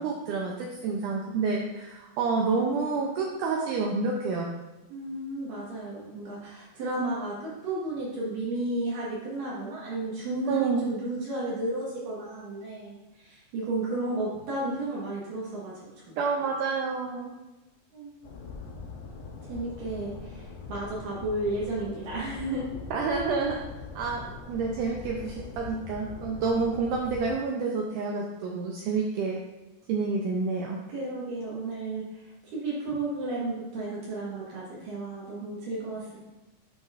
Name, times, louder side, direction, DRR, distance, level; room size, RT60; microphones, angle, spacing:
voice 1, 0.0-4.5 10.5-10.8 16.2-17.3 22.9-23.6 23.9-29.4 29.9-30.8, right 4 dB, 85° right, 0 dB, 1.8 m, -28 dB
voice 2, 4.9-15.9 17.9-18.3 19.4-22.6 30.9-32.2 32.5-36.2, right 2 dB, 65° right, -6 dB, 2.9 m, -33 dB
sound 1, 18.2-27.3, left 4 dB, 85° left, 2.8 m, -42 dB
9.3 x 5.4 x 2.5 m, 1.1 s
omnidirectional pair, 4.4 m